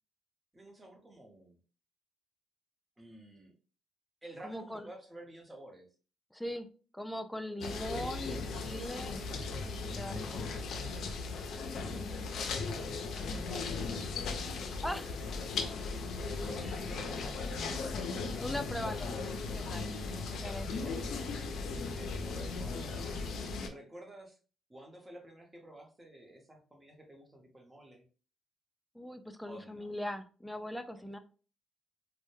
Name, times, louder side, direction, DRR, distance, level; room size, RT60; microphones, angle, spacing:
voice 1, 0.5-1.6 3.0-3.5 4.2-5.9 9.8-10.1 11.5-15.3 16.3-17.8 18.9-19.2 20.9-21.2 21.9-23.0 23.6-24.4 24.7-28.1 29.4-29.9 31.0-31.2, right 1 dB, 20° right, 1 dB, 0.8 m, -52 dB
voice 2, 4.4-4.9 6.3-6.7 6.9-9.2 9.6-10.4 14.8-15.1 16.6-16.7 18.4-19.9 20.3-21.3 28.9-31.2, left 1 dB, ahead, 8 dB, 0.3 m, -40 dB
sound 1, 7.6-23.7, left 4 dB, 70° left, 0.4 m, -37 dB
2.1 x 2.1 x 3.1 m, 0.37 s
cardioid pair, 90°, 0 cm